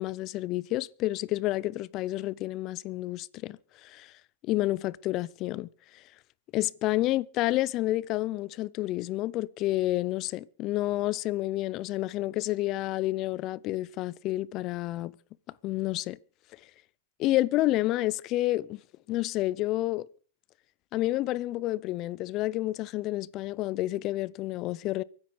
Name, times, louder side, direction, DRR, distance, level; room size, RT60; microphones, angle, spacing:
voice 1, 0.0-4.1 4.4-5.7 5.9-6.0 6.5-15.1 15.6-16.2 17.2-18.8 19.1-20.1 20.9-25.0, left 16 dB, 40° left, 0.6 m, -29 dB
23.0 x 9.8 x 5.1 m
hypercardioid pair, 130°, 0 cm